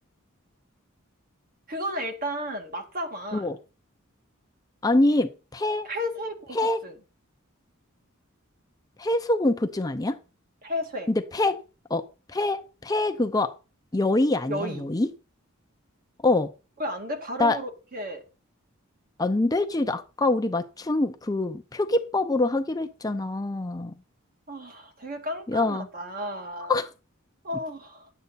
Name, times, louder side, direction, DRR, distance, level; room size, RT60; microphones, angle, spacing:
voice 1, 1.7-3.5 5.8-7.0 10.6-11.1 14.5-14.9 16.8-18.2 24.5-26.7 27.4-28.1, equal, 45° right, 5 dB, 1.9 m, -33 dB
voice 2, 4.8-5.9 6.5-6.8 9.0-10.2 11.1-11.6 11.9-12.0 12.3-13.5 13.9-15.1 16.2-16.5 17.4-17.6 19.2-23.9 25.5-25.9 26.7-26.9, left 2 dB, 20° left, 7 dB, 0.6 m, -25 dB
11.0 x 8.1 x 4.1 m, 0.32 s
head